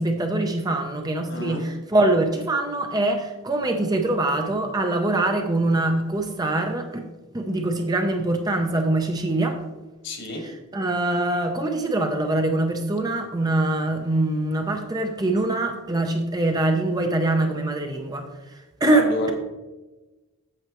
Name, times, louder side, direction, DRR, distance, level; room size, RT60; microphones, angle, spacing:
voice 1, 0.0-7.0 7.3-9.6 10.4-19.3, right 2 dB, 15° right, 4 dB, 0.6 m, -24 dB
voice 2, 1.3-1.6 10.0-10.4 18.9-19.3, left 2 dB, 55° left, 2 dB, 1.5 m, -29 dB
8.9 x 7.1 x 3.0 m, 1.1 s
head